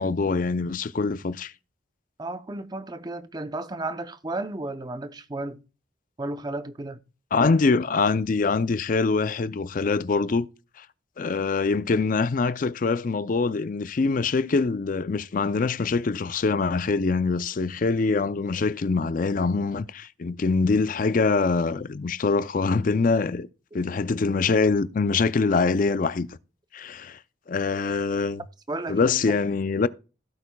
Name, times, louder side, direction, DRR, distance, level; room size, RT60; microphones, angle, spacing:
voice 1, 0.0-1.5 7.3-10.5 10.8-10.9 11.2-23.5 23.7-26.3 26.7-27.2 27.5-28.4 28.9-29.9, left 4 dB, 45° left, 0.4 m, -24 dB
voice 2, 2.2-5.6 6.2-7.0 28.7-29.4, right 2 dB, 20° right, 0.6 m, -33 dB
16.5 x 8.3 x 2.3 m
head